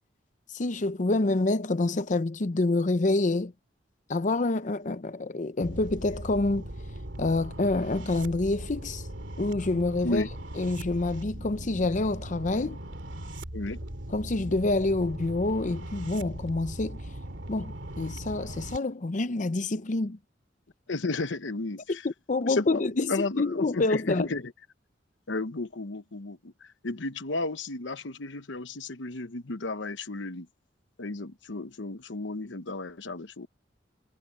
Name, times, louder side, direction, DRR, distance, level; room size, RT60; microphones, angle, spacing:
voice 1, 0.5-3.5 4.1-6.7 7.2-9.0 9.4-10.3 10.6-12.8 14.1-17.0 17.5-20.2 21.9-24.3, left 2 dB, 45° left, 0.7 m, -27 dB
sound 1, 5.6-18.8, right 1 dB, 80° right, 2.7 m, -39 dB
voice 2, 20.9-22.1 22.4-24.5 25.3-30.5 31.0-33.5, left 3 dB, 80° left, 1.0 m, -33 dB
head